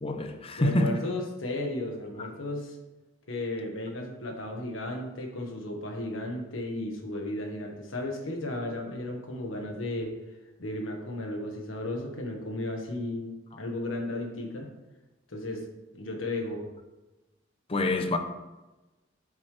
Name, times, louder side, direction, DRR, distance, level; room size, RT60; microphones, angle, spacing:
voice 1, 0.0-0.9 2.2-2.3 17.7-18.2, left 2 dB, 30° left, 0.7 m, -26 dB
voice 2, 0.6-2.8 3.3-10.1 10.6-14.7 15.3-16.6, left 1 dB, 80° left, 1.5 m, -34 dB
8.5 x 7.3 x 3.3 m
head